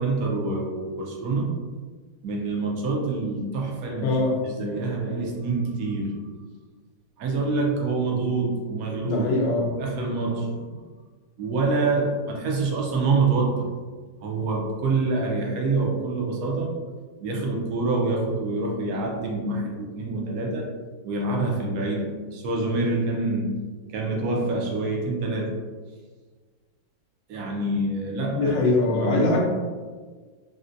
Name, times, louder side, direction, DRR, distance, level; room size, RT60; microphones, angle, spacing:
voice 1, 0.0-1.5 2.2-4.1 4.4-6.3 7.2-9.2 9.8-10.8 11.4-13.7 14.2-16.8 17.2-20.7 21.0-23.5 23.9-25.6 27.3-29.4, right 3 dB, 75° right, -1 dB, 0.8 m, -26 dB
voice 2, 4.0-4.3 9.0-9.7 28.3-29.4, left 2 dB, 75° left, -2 dB, 1.3 m, -22 dB
3.7 x 2.1 x 2.6 m, 1.4 s
omnidirectional pair, 2.1 m